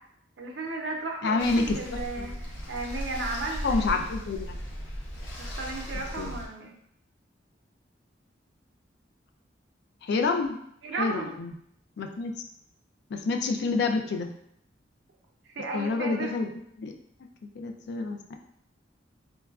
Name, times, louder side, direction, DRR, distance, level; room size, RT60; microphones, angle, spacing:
voice 1, 0.4-4.0 5.4-6.7 10.8-11.3 15.5-16.3, right 3 dB, 70° right, 1 dB, 0.6 m, -34 dB
voice 2, 1.2-1.8 2.2-2.3 3.6-4.6 6.2-6.3 10.0-10.6 11.0-11.5 12.0-12.3 13.1-14.3 15.7-16.5 16.8-17.0 17.6-18.4, left 3 dB, 65° left, 5 dB, 0.4 m, -28 dB
sound 1, 1.4-6.5, equal, 90° left, 0.7 m, -36 dB
3.9 x 2.3 x 2.3 m, 0.72 s
head